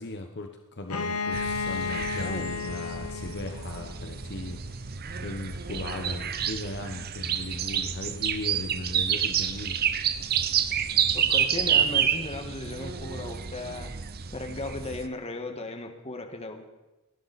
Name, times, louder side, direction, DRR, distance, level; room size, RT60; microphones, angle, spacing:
voice 1, 0.0-4.9 5.2-9.8, left 2 dB, 50° left, 4 dB, 1.2 m, -37 dB
Bowed string instrument, 0.9-4.6, left 5 dB, 90° left, 1.4 m, -33 dB
sound 1, 1.3-15.1, right 8 dB, 45° right, 0.8 m, -29 dB
voice 2, 2.2-2.5 11.1-13.9 14.3-16.6, left 2 dB, 30° left, 4 dB, 1.8 m, -36 dB
30.0 x 11.5 x 4.3 m, 1.1 s
head